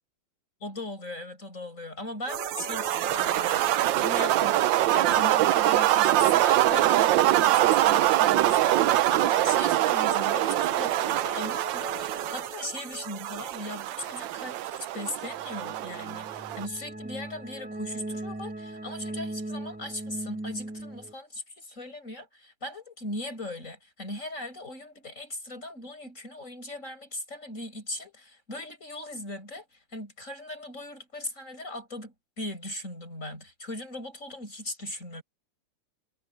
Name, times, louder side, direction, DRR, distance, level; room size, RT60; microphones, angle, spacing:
voice 1, 0.6-3.7 4.0-4.7 4.9-35.2, left 1 dB, 35° left, 7.9 m, -39 dB
sound 1, 2.3-6.5 6.7-6.8 8.5-14.2 15.3-21.1, right 1 dB, 5° right, 1.0 m, -40 dB
sound 2, 2.3-16.7, right 14 dB, 70° right, 1.2 m, -24 dB
omnidirectional pair, 2.4 m